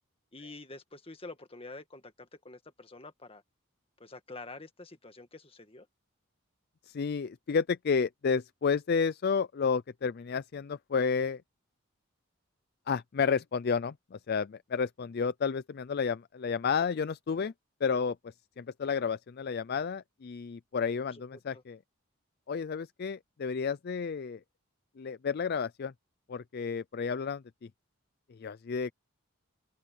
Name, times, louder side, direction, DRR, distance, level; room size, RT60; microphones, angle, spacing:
voice 1, 0.3-3.4 4.0-5.9 21.1-21.6, left 2 dB, 25° left, 1.8 m, -47 dB
voice 2, 6.9-11.4 12.9-17.5 17.8-21.8 22.5-24.4 25.0-25.9 26.3-27.4 28.3-28.9, left 5 dB, 50° left, 0.4 m, -31 dB
head